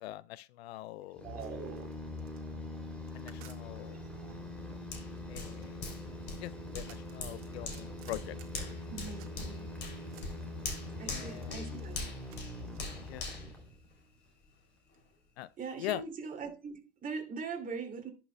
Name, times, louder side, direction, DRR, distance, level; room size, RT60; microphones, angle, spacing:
voice 1, 0.0-1.3 3.1-4.0 5.3-5.9 6.4-8.8 11.0-11.7 13.0-13.3 15.4-15.5 15.8-16.0, left 15 dB, 70° left, 0.5 m, -42 dB
sound 1, 1.2-14.0, left 2 dB, 5° left, 3.0 m, -43 dB
voice 2, 1.2-1.9 4.1-4.4 8.9-9.7 11.0-12.0 15.6-18.1, right 5 dB, 25° right, 2.7 m, -41 dB
sound 2, 1.4-4.1 4.9-9.6 9.9-13.0, right 10 dB, 40° right, 1.8 m, -59 dB
Hands, 4.9-14.4 14.9-15.0, left 3 dB, 35° left, 3.2 m, -44 dB
11.0 x 5.9 x 2.3 m
hypercardioid pair, 105°, 32 cm